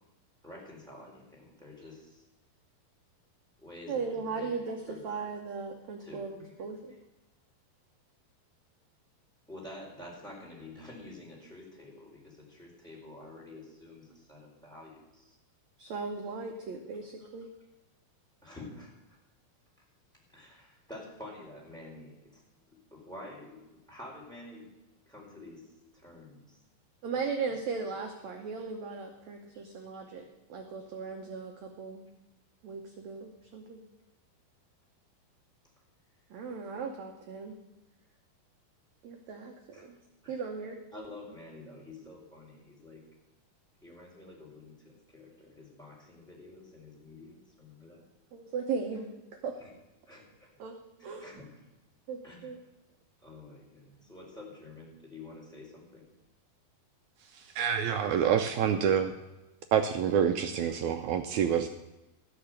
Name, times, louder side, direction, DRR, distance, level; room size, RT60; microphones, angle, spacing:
voice 1, 0.4-2.2 3.6-4.5 4.9-5.0 6.0-6.5 9.5-15.4 17.2-17.3 18.4-19.2 20.3-22.4 22.9-24.7 25.1-26.6 27.1-27.2 29.5-29.6 39.7-39.8 40.2-40.4 40.9-43.0 43.8-48.0 49.5-49.7 50.1-50.5 51.0-51.6 52.2-52.5 53.2-56.1, left 2 dB, ahead, -4 dB, 4.2 m, -49 dB
voice 2, 3.9-6.9 15.8-17.5 27.0-32.0 32.6-33.8 36.3-37.6 39.0-40.0 40.3-40.8 48.3-49.1 49.4-49.6 50.6-50.8 51.0-51.4 52.1-52.6, right 5 dB, 65° right, 3 dB, 1.8 m, -37 dB
voice 3, 57.3-59.1 59.7-61.7, right 8 dB, 85° right, 7 dB, 1.6 m, -27 dB
15.0 x 6.2 x 8.2 m, 1.0 s
omnidirectional pair, 4.2 m